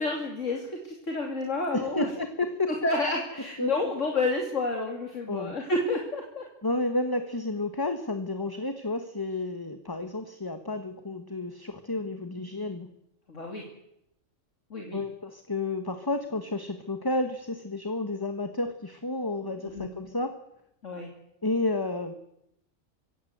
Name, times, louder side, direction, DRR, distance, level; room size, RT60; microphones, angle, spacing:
voice 1, 0.0-2.1 2.8-6.4 13.3-13.6 14.7-15.0 19.7-19.9 20.8-21.1, left 2 dB, 65° left, 2 dB, 3.1 m, -30 dB
voice 2, 1.7-2.7 3.6-3.7 5.3-5.6 6.6-12.9 14.9-20.4 21.4-22.1, left 2 dB, 15° left, 8 dB, 1.3 m, -31 dB
25.0 x 16.5 x 8.0 m, 0.82 s
omnidirectional pair, 1.4 m